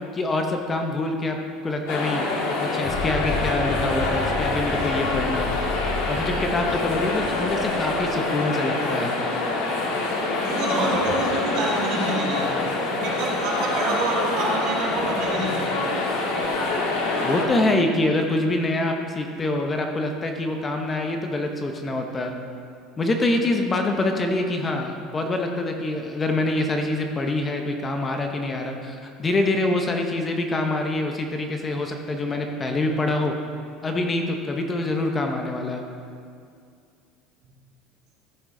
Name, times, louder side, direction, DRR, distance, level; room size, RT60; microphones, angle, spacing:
voice 1, 0.1-1.4 1.6-2.3 2.7-5.5 5.8-9.1 17.2-22.3 23.0-33.3 33.8-35.8, left 2 dB, 20° left, 3 dB, 0.7 m, -25 dB
sound 1, 1.9-17.4, left 2 dB, 85° left, 1.7 m, -26 dB
sound 2, 2.8-8.1, left 4 dB, 45° left, 2.3 m, -33 dB
voice 2, 10.4-15.8 37.4-37.5, right 2 dB, 55° right, -4 dB, 2.1 m, -27 dB
14.0 x 6.1 x 3.7 m, 2.3 s
cardioid pair, 155°, 0 cm